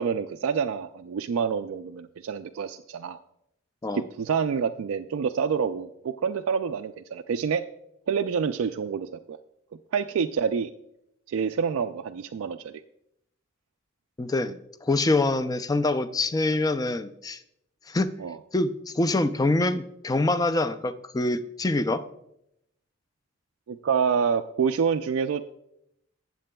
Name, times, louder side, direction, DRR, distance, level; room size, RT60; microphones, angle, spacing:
voice 1, 0.0-3.2 3.9-7.6 8.1-9.4 9.9-10.7 11.3-12.7 18.2-18.4 23.7-25.5, right 6 dB, 85° right, 6 dB, 0.3 m, -27 dB
voice 2, 14.2-17.4 17.9-18.1 18.5-22.0, left 2 dB, 20° left, 12 dB, 0.4 m, -25 dB
16.0 x 7.5 x 2.3 m, 0.79 s
head